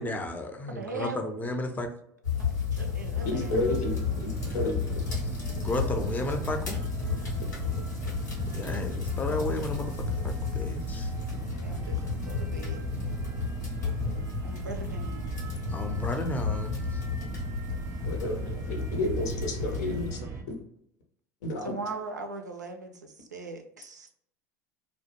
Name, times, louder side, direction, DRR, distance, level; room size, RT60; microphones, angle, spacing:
voice 1, 0.0-1.9 5.6-6.8 8.5-9.9 10.2-11.1 15.7-16.8, left 2 dB, 20° left, 5 dB, 0.5 m, -32 dB
voice 2, 0.7-1.2 2.4-3.6 11.5-12.8 14.4-15.4 21.6-24.1, right 3 dB, 90° right, 5 dB, 0.4 m, -40 dB
sound 1, 2.2-20.1, left 6 dB, 85° left, 1.1 m, -33 dB
sound 2, 3.1-20.4, right 5 dB, 35° right, 0.5 m, -37 dB
voice 3, 3.3-3.9 4.2-4.7 18.1-20.2 20.5-20.6 21.4-21.7, left 2 dB, 65° left, 3 dB, 0.7 m, -31 dB
2.2 x 2.1 x 2.9 m, 0.73 s
hypercardioid pair, 75°, 9 cm